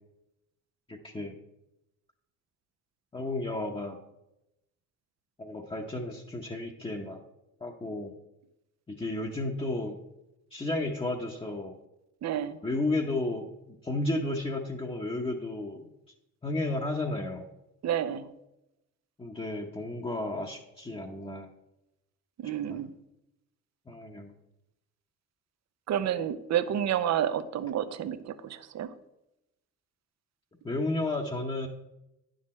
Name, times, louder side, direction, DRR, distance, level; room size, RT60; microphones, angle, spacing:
voice 1, 0.9-1.3 3.1-4.0 5.4-7.2 7.6-8.1 8.9-10.0 10.5-11.8 12.6-15.9 16.4-17.5 19.2-21.5 22.7-22.8 23.9-24.3 30.6-31.7, left 2 dB, 15° left, -1 dB, 0.9 m, -33 dB
voice 2, 12.2-12.6 17.8-18.3 22.4-22.9 25.9-28.9, right 10 dB, 60° right, 13 dB, 0.7 m, -30 dB
9.3 x 6.4 x 4.3 m, 0.89 s
cardioid pair, 90°, 30 cm